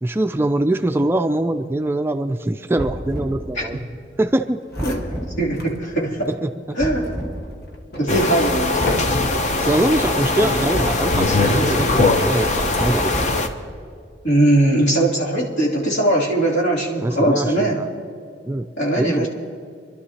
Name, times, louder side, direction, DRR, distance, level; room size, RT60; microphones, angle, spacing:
voice 1, 0.0-3.8 4.2-4.6 6.3-6.8 9.6-13.1 17.0-17.9 18.4-18.7 19.0-19.3, right 1 dB, 15° right, 7 dB, 0.3 m, -23 dB
sound 1, 2.8-3.4 4.8-5.3 6.8-7.4 8.8-9.4 10.7-11.3 12.8-13.5, equal, 15° left, 3.6 m, -29 dB
sound 2, 4.4-4.5 4.7-5.8 6.2-6.4 7.0-9.6 10.4-10.7, left 2 dB, 55° left, 1.1 m, -34 dB
voice 2, 4.8-6.3 6.8-7.1 7.9-8.8 14.2-17.8 18.8-19.3, right 1 dB, 75° left, -5 dB, 2.9 m, -20 dB
sound 3, 8.1-13.5, left 2 dB, 40° left, 0.7 m, -20 dB
29.5 x 12.0 x 2.9 m, 2.2 s
head